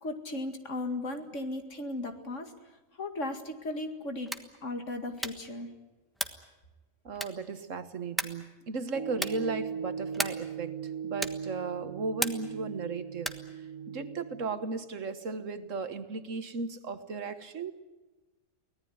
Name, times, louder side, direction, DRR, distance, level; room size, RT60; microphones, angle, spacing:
voice 1, 0.0-2.5 3.0-4.3 4.6-5.7, left 2 dB, 65° left, 6 dB, 2.5 m, -36 dB
sound 1, 4.2-4.6 5.2-5.5 6.1-6.5 7.2-7.6 8.2-8.5 9.1-9.5 10.1-10.5 11.2-11.5 12.2-12.6 13.2-13.5, equal, ahead, 1.2 m, -35 dB
voice 2, 7.0-10.7 11.0-13.3 13.9-17.7, right 4 dB, 70° right, 10 dB, 1.7 m, -36 dB
sound 2, 8.9-14.5, right 7 dB, 85° right, 1.7 m, -39 dB
24.0 x 18.5 x 9.4 m, 1.2 s
omnidirectional pair, 1.4 m